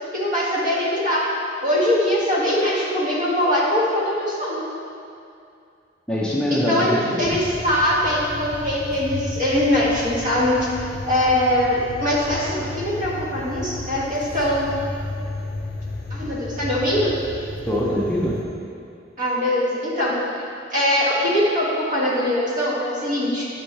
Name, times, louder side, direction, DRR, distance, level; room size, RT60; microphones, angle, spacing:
voice 1, 0.1-1.2 1.6-4.7 6.5-10.7 11.1-14.7 16.1-17.2 19.2-20.4 20.7-23.5, left 1 dB, 45° right, -6 dB, 1.6 m, -22 dB
voice 2, 6.1-7.4 17.7-18.4, left 1 dB, 5° left, -5 dB, 0.5 m, -23 dB
sound 1, 7.2-18.5, left 2 dB, 55° left, 0.7 m, -33 dB
8.7 x 5.3 x 3.2 m, 2.5 s
head